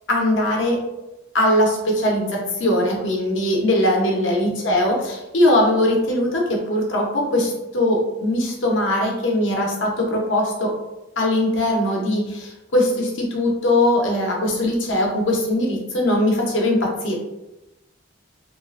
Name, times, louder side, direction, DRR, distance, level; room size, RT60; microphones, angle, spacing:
voice 1, 0.1-0.8 1.3-10.7 11.2-17.2, left 1 dB, 80° left, -1 dB, 0.7 m, -20 dB
3.2 x 2.5 x 2.4 m, 0.98 s
head